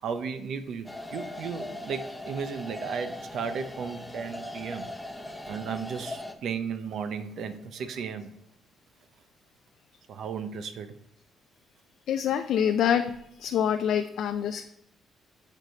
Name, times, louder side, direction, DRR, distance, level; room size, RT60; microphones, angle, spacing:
voice 1, 0.0-4.9 5.5-8.3 10.1-10.9, right 6 dB, 70° right, 10 dB, 0.6 m, -35 dB
sound 1, 0.9-6.3, left 1 dB, 5° left, 0.8 m, -39 dB
voice 2, 12.1-13.1 13.4-14.6, left 9 dB, 75° left, 7 dB, 0.4 m, -25 dB
7.8 x 4.6 x 4.6 m, 0.77 s
cardioid pair, 90°, 0 cm